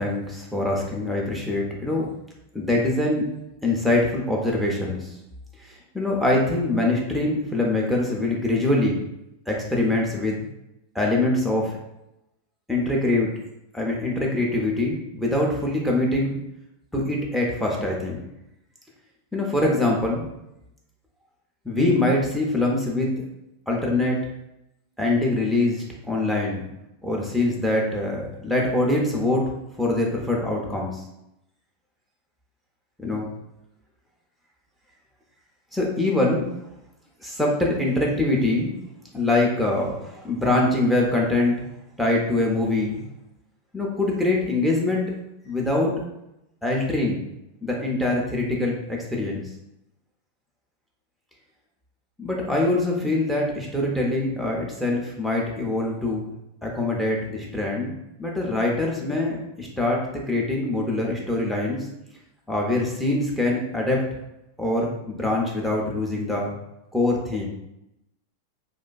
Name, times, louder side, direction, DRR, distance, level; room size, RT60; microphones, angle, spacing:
voice 1, 0.0-2.1 2.5-3.3 3.6-5.1 5.6-9.0 9.5-10.4 10.9-11.8 12.7-13.3 13.7-16.4 16.9-18.2 19.3-20.2 21.7-23.2 23.7-24.2 25.0-26.7 27.0-29.5 29.8-31.0 33.0-33.3 35.7-36.5 37.2-38.7 39.1-41.6 42.0-43.0 43.7-45.1 45.4-45.9 46.6-47.2 47.6-49.4 52.2-56.3 56.6-57.9 58.2-61.9 62.5-64.1 64.6-66.5 66.9-67.5, left 2 dB, ahead, -2 dB, 0.4 m, -24 dB
2.4 x 2.2 x 2.3 m, 0.87 s
figure-of-eight pair, 90°, 0 cm